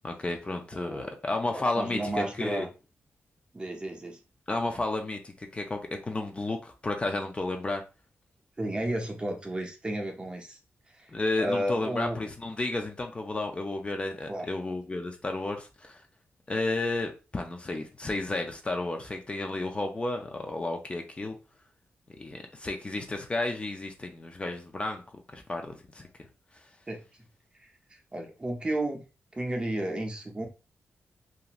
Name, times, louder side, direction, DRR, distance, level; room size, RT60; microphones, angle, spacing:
voice 1, 0.0-2.7 4.5-7.8 11.1-16.0 16.5-21.4 22.2-25.0 25.3-26.0, left 2 dB, 25° left, 0.4 m, -32 dB
voice 2, 0.7-1.1 1.5-2.7 3.5-4.2 8.6-10.6 10.9-11.1 11.4-12.2 14.3-14.5 26.9-27.0 27.6-29.0 29.3-30.5, right 1 dB, 20° right, 0.6 m, -33 dB
2.5 x 2.4 x 2.9 m
wide cardioid pair, 125°, 5 cm